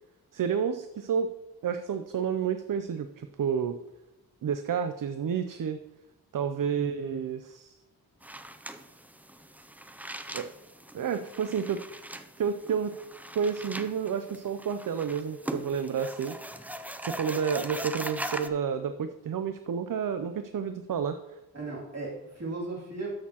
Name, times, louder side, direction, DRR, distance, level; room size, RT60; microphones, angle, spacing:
voice 1, 0.3-1.3 1.6-3.8 4.4-5.8 6.3-7.8 10.3-10.5 10.9-11.8 12.4-12.9 13.3-16.4 17.0-21.4, right 7 dB, 60° right, 9 dB, 0.5 m, -30 dB
voice 2, 6.8-7.2 21.5-23.1, right 3 dB, 40° right, -4 dB, 2.7 m, -37 dB
sound 1, 8.2-18.5, right 1 dB, 5° right, 0.4 m, -40 dB
13.0 x 6.5 x 2.9 m, 0.98 s
wide cardioid pair, 115°, 38 cm